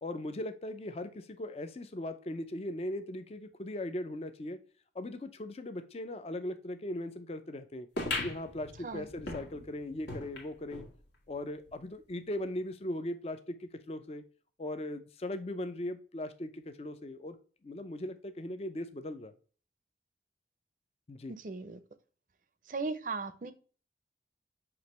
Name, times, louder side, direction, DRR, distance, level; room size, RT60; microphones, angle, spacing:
voice 1, 0.0-4.6 4.9-7.9 8.2-10.8 11.3-14.2 14.6-17.4 17.6-19.3 21.1-21.3, left 1 dB, 35° left, 9 dB, 0.4 m, -39 dB
sound 1, 8.0-10.9 11.4-11.5 11.7-11.8 12.5-12.6, left 2 dB, 75° left, 1.5 m, -39 dB
voice 2, 21.4-21.8 22.7-23.5, right 4 dB, 45° right, 12 dB, 0.5 m, -37 dB
6.1 x 2.9 x 3.0 m, 0.40 s
head